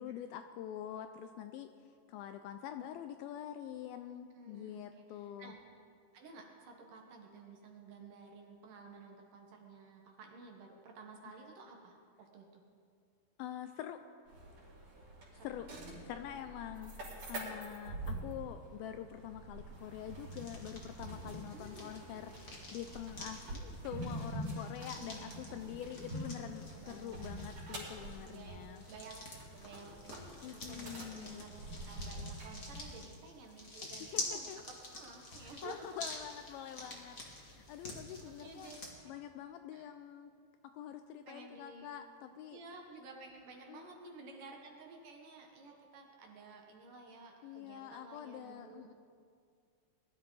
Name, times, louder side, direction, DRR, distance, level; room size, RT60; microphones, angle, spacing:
voice 1, 0.0-1.7 2.1-5.5 13.4-14.0 15.4-15.7 15.9-22.3 22.7-28.8 30.4-31.4 33.8-34.6 35.6-38.7 39.1-40.3 40.6-42.6 43.7-44.1 47.4-48.9, left 10 dB, 80° left, 8 dB, 2.2 m, -46 dB
voice 2, 4.3-5.6 6.1-12.6 15.3-15.5 21.5-22.1 22.4-22.6 25.0-25.6 26.1-27.5 28.2-35.8 38.2-38.8 39.0-39.1 39.7-39.9 41.3-42.0 42.3-48.9, right 3 dB, 65° right, 1 dB, 2.6 m, -53 dB
sound 1, 14.3-32.9, right 1 dB, 45° right, 4.5 m, -46 dB
sound 2, 19.7-38.9, left 2 dB, 35° left, 1.4 m, -48 dB
21.0 x 12.5 x 3.9 m, 2.2 s
omnidirectional pair, 4.6 m